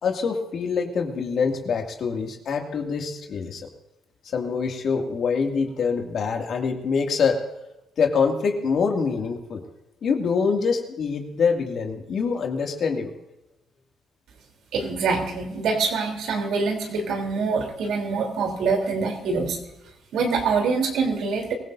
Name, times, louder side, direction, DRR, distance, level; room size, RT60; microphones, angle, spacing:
voice 1, 0.0-3.7 4.3-7.4 8.0-9.6 10.0-13.1, left 5 dB, 60° left, 2 dB, 2.3 m, -25 dB
voice 2, 14.7-19.6 20.1-21.5, right 4 dB, 80° right, 2 dB, 3.4 m, -25 dB
23.5 x 16.5 x 2.7 m, 0.93 s
cardioid pair, 90°, 0 cm